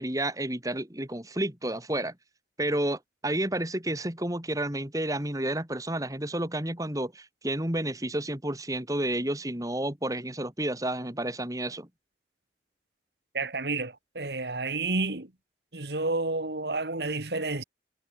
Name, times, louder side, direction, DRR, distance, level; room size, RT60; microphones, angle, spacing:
voice 1, 0.0-2.1 2.6-11.9, right 1 dB, 20° right, 2.7 m, -30 dB
voice 2, 13.3-15.3 15.7-17.6, right 3 dB, 70° right, 2.3 m, -30 dB
head